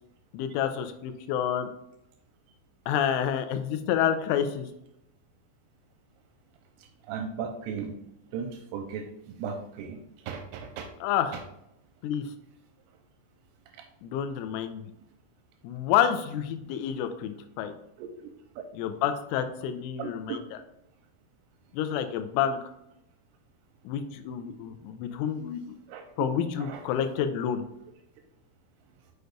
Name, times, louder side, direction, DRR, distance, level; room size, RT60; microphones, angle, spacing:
voice 1, 0.3-1.7 2.9-4.7 11.0-11.4 12.0-12.3 14.0-14.8 15.6-17.7 18.7-20.6 21.7-22.6 23.9-25.8 26.2-27.6, left 9 dB, 85° left, 9 dB, 2.9 m, -29 dB
voice 2, 7.1-7.9 8.3-9.1 9.4-10.0 10.3-10.9 18.0-18.3 20.0-20.4 25.9-26.0 26.7-26.8, right 6 dB, 85° right, 4 dB, 3.1 m, -36 dB
6.5 x 6.4 x 2.3 m, 0.82 s
omnidirectional pair, 6.0 m